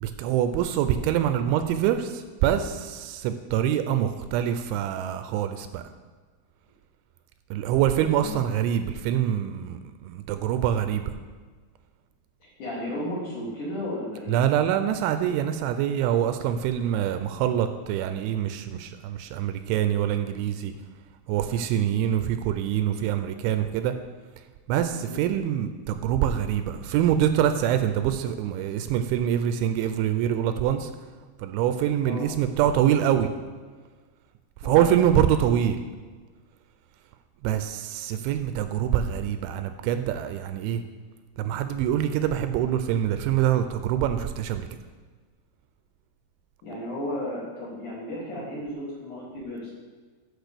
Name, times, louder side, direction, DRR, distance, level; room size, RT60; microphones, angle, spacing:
voice 1, 0.0-5.8 7.5-11.0 14.3-20.7 21.3-23.9 24.7-30.9 31.4-33.3 34.6-35.8 37.4-40.8 41.4-44.7, right 10 dB, 85° right, 9 dB, 2.8 m, -25 dB
voice 2, 12.4-14.4 25.0-25.2 32.0-32.3 34.6-34.9 46.6-49.7, left 1 dB, 55° left, -5 dB, 2.7 m, -34 dB
8.1 x 6.4 x 6.7 m, 1.4 s
omnidirectional pair, 5.5 m